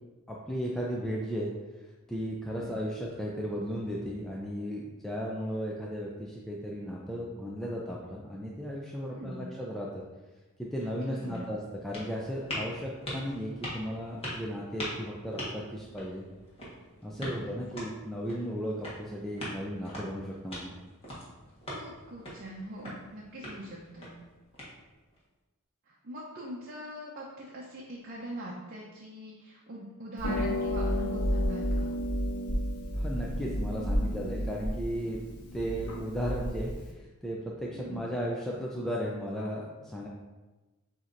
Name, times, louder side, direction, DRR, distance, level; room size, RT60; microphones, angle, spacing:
voice 1, 0.3-1.5 2.1-10.0 10.6-16.2 17.0-20.7 33.0-35.2 35.5-40.1, equal, ahead, -4 dB, 0.4 m, -35 dB
voice 2, 9.1-9.5 10.8-11.5 17.2-17.6 21.7-24.1 25.9-31.9 37.7-38.0, right 1 dB, 45° right, -4 dB, 0.6 m, -42 dB
sound 1, 10.7-25.2, left 1 dB, 25° left, 1.3 m, -43 dB
Harp, 30.2-36.9, equal, 85° left, 0.9 m, -31 dB
7.3 x 2.7 x 2.5 m, 1.2 s
head